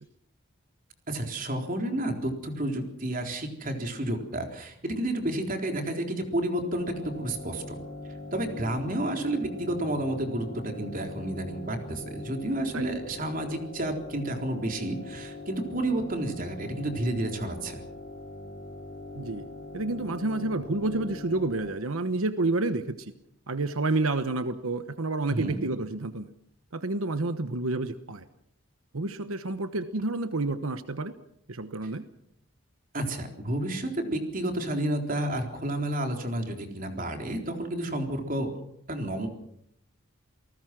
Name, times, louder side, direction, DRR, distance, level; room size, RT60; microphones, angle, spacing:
voice 1, 1.1-7.6 8.3-17.8 25.3-25.6 32.9-38.5 38.9-39.3, right 1 dB, 40° right, 4 dB, 3.9 m, -31 dB
sound 1, 6.8-21.7, left 2 dB, 45° left, 3.3 m, -42 dB
voice 2, 19.1-19.5 19.7-23.1 23.5-26.3 26.7-28.2 28.9-31.1 31.5-32.1, right 2 dB, 85° right, 10 dB, 1.1 m, -29 dB
28.5 x 19.0 x 6.1 m, 0.74 s
head